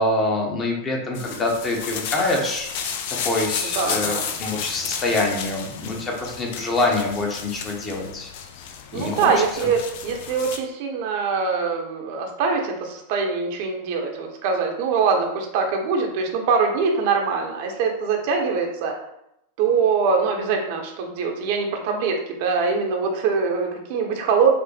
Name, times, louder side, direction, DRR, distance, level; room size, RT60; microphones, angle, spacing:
voice 1, 0.0-2.7 3.2-8.3 8.9-9.3, left 2 dB, 20° left, 0 dB, 0.8 m, -25 dB
sound 1, 1.1-10.6, left 7 dB, 50° left, 0.4 m, -32 dB
voice 2, 3.6-4.3 8.9-18.9 19.6-24.5, right 5 dB, 50° right, 2 dB, 0.6 m, -23 dB
4.9 x 2.0 x 3.2 m, 0.81 s
figure-of-eight pair, 90°, 0 cm